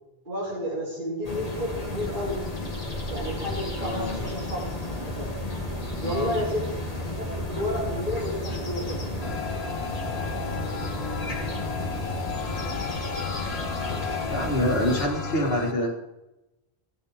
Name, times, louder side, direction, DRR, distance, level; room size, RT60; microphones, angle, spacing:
voice 1, 0.2-2.5 3.1-5.3 6.0-6.7 7.2-9.2, left 1 dB, 50° right, -13 dB, 4.8 m, -31 dB
sound 1, 1.2-15.1, left 2 dB, 40° left, 1.8 m, -32 dB
sound 2, 1.7-12.2, equal, 80° right, 5.5 m, -46 dB
voice 2, 3.8-4.2 6.0-6.4 14.3-15.9, equal, 70° left, 1 dB, 2.0 m, -26 dB
sound 3, 9.2-15.7, left 6 dB, 90° left, 1.3 m, -34 dB
16.5 x 9.0 x 3.6 m, 0.99 s
omnidirectional pair, 1.0 m